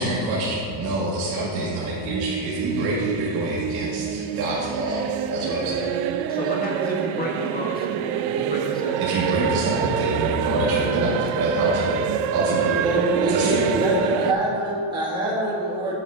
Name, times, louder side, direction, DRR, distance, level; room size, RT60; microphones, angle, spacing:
voice 1, 0.0-5.9 9.0-12.8 13.3-13.7, right 1 dB, 55° right, -7 dB, 1.9 m, -26 dB
sound 1, 1.9-14.3, right 9 dB, 80° right, 0.6 m, -26 dB
voice 2, 6.3-9.3, left 1 dB, 20° left, -2 dB, 1.5 m, -31 dB
voice 3, 12.8-16.0, right 1 dB, 10° right, -6 dB, 1.4 m, -24 dB
8.7 x 4.1 x 6.8 m, 2.3 s
cardioid pair, 140°, 46 cm